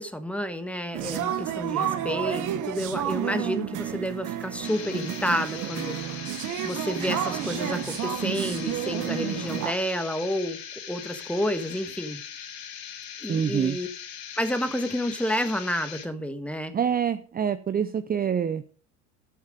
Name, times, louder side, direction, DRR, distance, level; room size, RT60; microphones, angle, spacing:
voice 1, 0.0-6.0 6.6-10.6 10.9-12.2 13.2-13.9 14.4-16.7, equal, 5° left, 9 dB, 1.6 m, -30 dB
sound 1, 0.9-9.7, right 11 dB, 50° right, 1.5 m, -30 dB
sound 2, 4.6-16.1, left 9 dB, 65° left, 2.5 m, -40 dB
voice 2, 13.3-13.8 16.7-18.6, right 8 dB, 25° right, 12 dB, 0.7 m, -26 dB
13.0 x 7.2 x 5.2 m, 0.43 s
hypercardioid pair, 80°, 38 cm